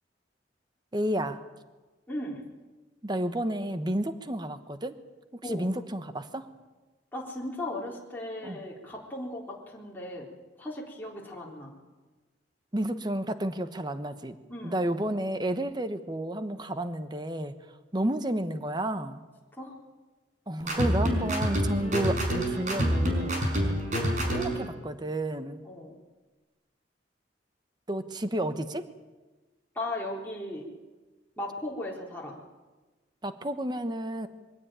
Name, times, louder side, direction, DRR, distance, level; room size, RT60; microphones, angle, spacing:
voice 1, 0.9-1.4 3.0-5.0 5.3-6.5 8.4-8.6 12.7-14.3 14.6-17.5 17.9-19.2 20.5-23.4 24.3-25.6 27.9-28.8 33.2-34.3, right 1 dB, 25° right, 10 dB, 1.1 m, -31 dB
voice 2, 2.1-2.4 5.4-5.7 7.1-10.3 10.6-11.7 14.5-14.8 19.6-19.7 25.6-25.9 29.7-30.7 31.4-32.3, left 1 dB, 10° left, -4 dB, 4.0 m, -37 dB
sound 1, 20.6-24.7, equal, 45° right, 5.6 m, -27 dB
23.0 x 17.0 x 9.2 m, 1.2 s
head